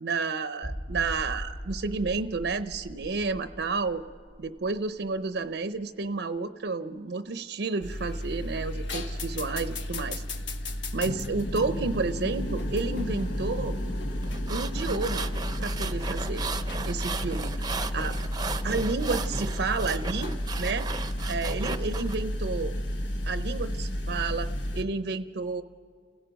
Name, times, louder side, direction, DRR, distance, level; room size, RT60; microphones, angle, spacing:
voice 1, 0.0-4.0 4.4-10.2 10.9-13.8 14.5-15.3 15.6-16.4 16.8-17.6 17.9-18.2 18.6-20.9 21.3-22.8 23.3-24.5 24.7-25.6, right 4 dB, 70° right, 11 dB, 0.6 m, -31 dB
sound 1, 0.6-6.1 6.4-6.5 7.0-7.1, equal, 45° left, 1.1 m, -41 dB
sound 2, 7.8-24.8, left 1 dB, 80° left, 1.2 m, -32 dB
sound 3, 14.2-22.2, right 4 dB, 25° right, 0.7 m, -36 dB
29.5 x 17.0 x 5.1 m, 2.3 s
head